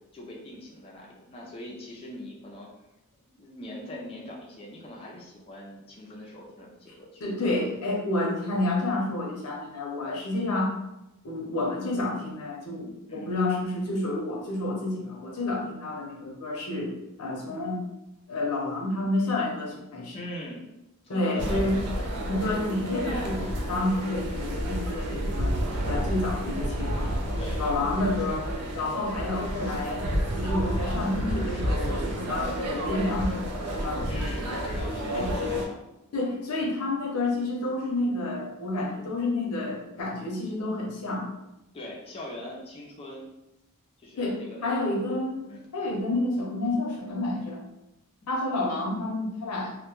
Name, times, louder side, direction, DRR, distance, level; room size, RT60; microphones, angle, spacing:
voice 1, 0.1-2.7 3.3-7.2 13.1-13.3 20.1-20.6 21.0-22.0 27.4-28.0 34.1-35.8 36.3-36.4 41.7-43.3 44.0-45.2 45.5-45.7 48.2-48.3, left 1 dB, 25° left, -3 dB, 0.3 m, -41 dB
voice 2, 7.2-10.7 11.2-16.9 17.2-17.8 18.3-20.2 21.1-21.8 22.3-25.6 25.9-27.1 27.6-28.5 28.7-30.1 30.4-34.2 35.1-35.3 36.1-41.3 44.2-45.5 45.7-47.6 48.3-49.7, left 2 dB, 90° left, -2 dB, 0.7 m, -29 dB
sound 1, 21.4-35.7, equal, 90° right, 0.5 m, -30 dB
2.1 x 2.1 x 2.9 m, 0.92 s
head